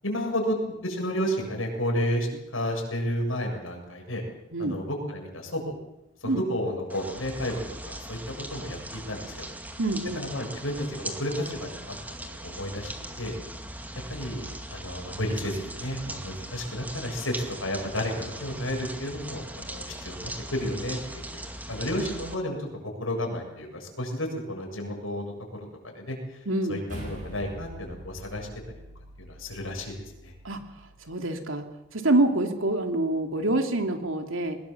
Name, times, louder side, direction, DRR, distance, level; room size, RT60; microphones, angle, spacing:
voice 1, 0.0-4.2 4.6-5.8 6.2-7.5 7.8-8.2 8.5-9.5 10.1-13.4 14.1-17.3 17.6-21.4 21.7-22.7 23.0-25.7 25.9-28.8 29.2-29.9 30.2-30.3, equal, 80° left, 1 dB, 7.4 m, -32 dB
sound 1, 6.9-22.4, right 1 dB, 10° right, 2.2 m, -40 dB
voice 2, 9.8-10.2 26.5-26.8 30.4-30.6 31.1-31.6 31.9-34.6, right 2 dB, 80° right, 5 dB, 2.9 m, -26 dB
sound 2, 26.9-31.4, equal, 40° right, 7.9 m, -44 dB
22.5 x 20.5 x 7.4 m, 0.94 s
head